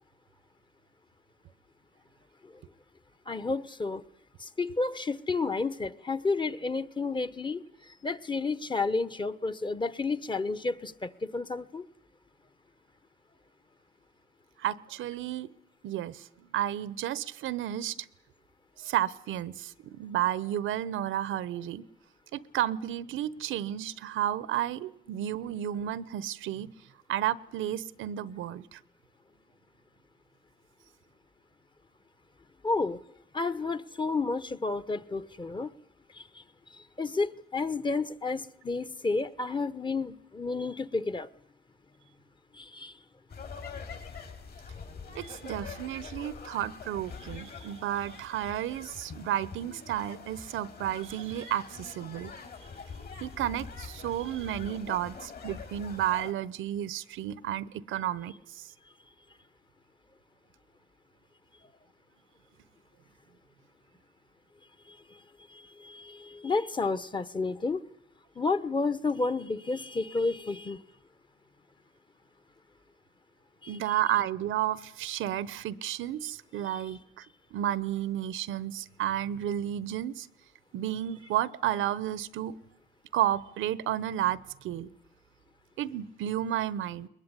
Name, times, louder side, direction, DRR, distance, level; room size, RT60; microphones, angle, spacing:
voice 1, 3.3-4.0 4.4-11.9 32.6-33.0 33.3-35.7 36.1-36.4 36.7-41.3 42.5-43.0 64.9-65.2 65.5-67.8 68.3-70.8 73.6-73.8 76.6-77.0, left 3 dB, 25° left, 1.2 m, -31 dB
voice 2, 14.6-15.5 15.8-18.1 18.8-21.8 22.3-26.7 27.1-28.8 45.1-52.3 53.2-58.7 73.7-77.2 77.5-80.3 80.7-82.5 83.1-84.9 85.8-87.1, right 12 dB, 85° right, 1.0 m, -32 dB
sound 1, 43.3-56.3, left 5 dB, 50° left, 5.8 m, -44 dB
21.5 x 21.0 x 9.9 m
cardioid pair, 90°, 20 cm